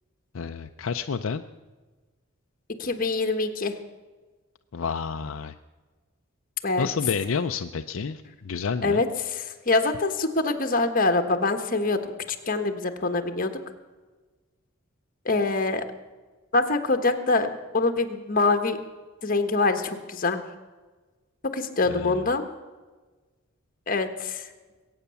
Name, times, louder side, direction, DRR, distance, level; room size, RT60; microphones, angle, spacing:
voice 1, 0.3-1.4 4.7-5.5 6.8-9.0 21.9-22.2, left 5 dB, 70° left, 7 dB, 0.5 m, -30 dB
voice 2, 2.8-3.8 6.6-6.9 8.8-13.6 15.2-15.8 16.5-18.8 19.2-20.4 21.5-22.4 23.9-24.5, left 3 dB, 40° left, 7 dB, 1.4 m, -25 dB
21.5 x 9.0 x 7.0 m, 1.3 s
head